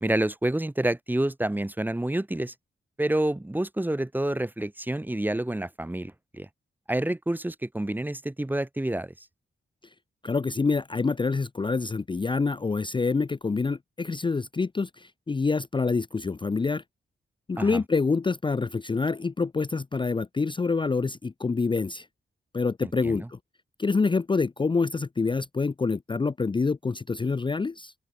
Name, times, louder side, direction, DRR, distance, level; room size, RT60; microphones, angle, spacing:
voice 1, 0.0-2.5 3.0-6.5 6.9-9.1 17.6-17.8 22.8-23.3, right 1 dB, 10° right, 1.0 m, -28 dB
voice 2, 10.2-16.8 17.5-22.1 22.5-23.4 23.8-27.9, left 4 dB, 25° left, 0.6 m, -26 dB
open air
wide cardioid pair, 135°, 21 cm